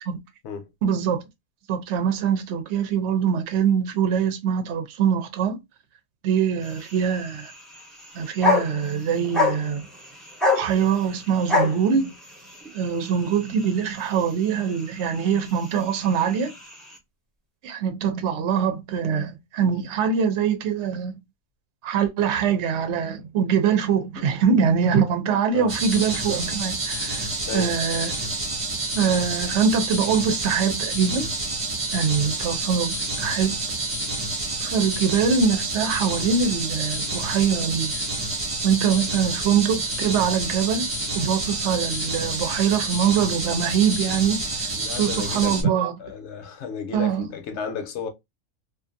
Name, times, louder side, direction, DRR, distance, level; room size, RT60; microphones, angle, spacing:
voice 1, 0.8-1.2 1.7-5.6 6.2-7.5 8.1-9.9 10.5-12.1 12.7-16.5 17.6-21.2 21.8-27.3 27.5-28.1 28.9-31.3 31.9-33.6 34.6-38.0 38.6-40.9 41.1-44.5 45.0-45.9 46.9-47.3, right 7 dB, 60° right, 0.8 m, -23 dB
sound 1, 6.6-17.0, left 3 dB, ahead, 0.5 m, -29 dB
sound 2, 25.7-45.6, right 2 dB, 30° right, 0.9 m, -28 dB
voice 2, 44.8-45.7 46.0-48.1, left 6 dB, 60° left, 0.9 m, -33 dB
2.5 x 2.4 x 2.5 m
omnidirectional pair, 1.5 m